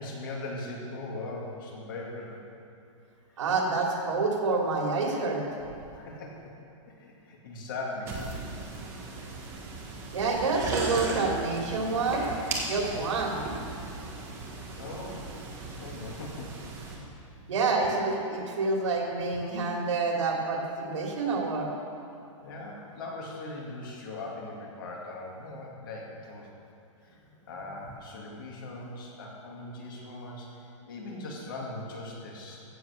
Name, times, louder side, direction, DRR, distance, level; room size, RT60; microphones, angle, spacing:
voice 1, 0.0-2.4 5.9-6.5 6.9-8.3 9.1-9.3 14.8-15.3 15.8-16.6 22.4-26.5 27.0-27.2 27.5-32.6, left 2 dB, 40° left, -1 dB, 2.3 m, -40 dB
voice 2, 3.4-5.4 10.1-12.3 12.7-13.4 17.5-21.7, right 3 dB, 65° right, 0 dB, 2.9 m, -28 dB
sound 1, 8.1-16.9, right 3 dB, 15° right, 1.2 m, -37 dB
15.5 x 7.9 x 6.5 m, 2.7 s
hypercardioid pair, 180°, 17 cm